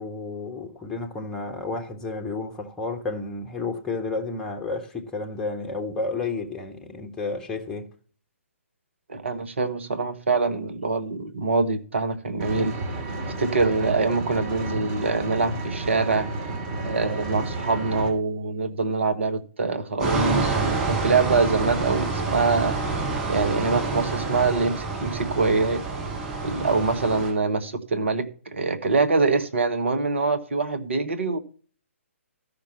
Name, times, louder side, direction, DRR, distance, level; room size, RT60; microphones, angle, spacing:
voice 1, 0.0-7.9, left 3 dB, 5° left, 1.2 m, -31 dB
voice 2, 9.1-12.7 13.4-16.3 16.8-22.8 23.2-25.8 26.4-31.4, right 4 dB, 60° right, 1.5 m, -24 dB
Vehicle, 12.4-18.1, right 2 dB, 30° right, 2.7 m, -31 dB
sound 1, 20.0-27.3, right 4 dB, 10° right, 6.6 m, -27 dB
13.5 x 5.9 x 5.8 m
figure-of-eight pair, 135°, 7 cm